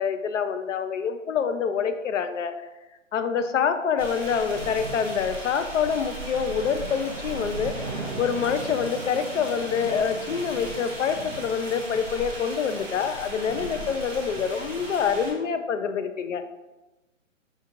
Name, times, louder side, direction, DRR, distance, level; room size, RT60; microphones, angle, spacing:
voice 1, 0.0-2.5 3.1-16.4, left 6 dB, 70° left, 8 dB, 0.5 m, -26 dB
sound 1, 4.0-15.3, right 2 dB, 5° right, 0.8 m, -36 dB
5.5 x 2.5 x 2.9 m, 1.1 s
hypercardioid pair, 165°, 39 cm